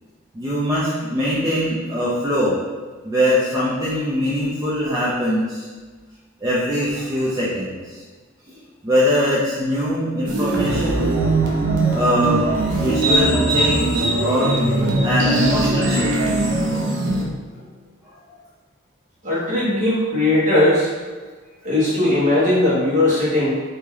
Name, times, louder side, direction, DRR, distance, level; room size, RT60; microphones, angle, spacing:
voice 1, 0.3-2.6 3.0-5.7 6.4-8.0 8.5-11.1 11.9-14.5 15.0-16.1, equal, 15° right, -9 dB, 0.4 m, -22 dB
sound 1, 10.3-17.2, right 2 dB, 65° right, 0.5 m, -20 dB
voice 2, 19.2-20.9 21.6-23.5, left 1 dB, 40° right, -9 dB, 1.2 m, -18 dB
3.1 x 2.8 x 2.3 m, 1.4 s
head